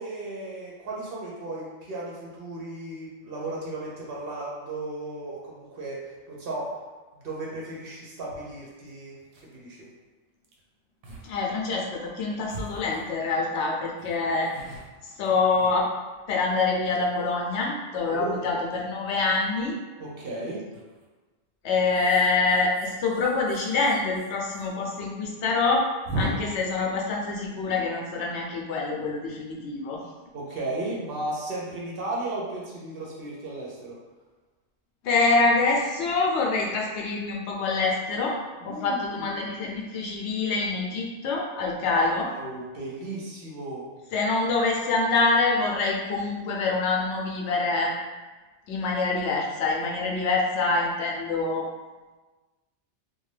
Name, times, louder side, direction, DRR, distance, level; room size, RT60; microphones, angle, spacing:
voice 1, 0.0-6.7 7.2-9.2 9.4-9.8 14.2-14.3 18.1-18.6 20.0-20.6 26.2-26.3 30.3-34.0 38.6-39.4 41.9-43.9, right 2 dB, 60° right, -5 dB, 0.8 m, -35 dB
sound 1, 8.3-8.4 8.9-9.0 9.2-9.6 10.4-10.6 11.0-11.3 11.6-11.7 12.5-13.4 14.0-16.2 16.7-17.5 19.2-19.5 20.7-21.1 21.8-24.7 24.9-25.0 25.3-25.4 26.0-26.3, right 1 dB, 85° right, 0.9 m, -38 dB
voice 2, 11.2-14.5 15.2-15.9 16.3-19.7 21.6-25.8 26.1-30.0 35.0-38.4 38.6-42.3 44.1-48.0 48.7-51.7, left 3 dB, 75° left, -1 dB, 0.8 m, -25 dB
2.6 x 2.2 x 3.1 m, 1.3 s
omnidirectional pair, 1.2 m